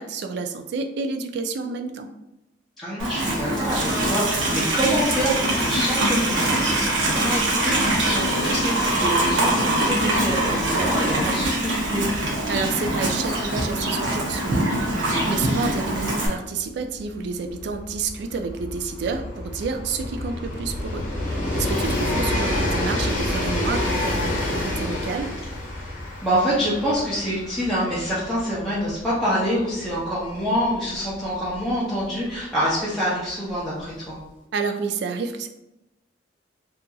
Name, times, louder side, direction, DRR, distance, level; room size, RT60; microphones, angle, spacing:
voice 1, 0.0-2.1 12.5-25.3 34.5-35.5, right 4 dB, 60° right, 6 dB, 0.3 m, -29 dB
voice 2, 2.8-12.1 14.9-15.3 26.2-34.2, equal, ahead, -11 dB, 0.6 m, -26 dB
Livestock farm animals working animals, 3.0-16.3, right 1 dB, 75° right, 0.7 m, -23 dB
Train, 16.4-32.3 33.3-33.4, left 1 dB, 45° left, 0.6 m, -29 dB
2.8 x 2.6 x 2.3 m, 0.93 s
head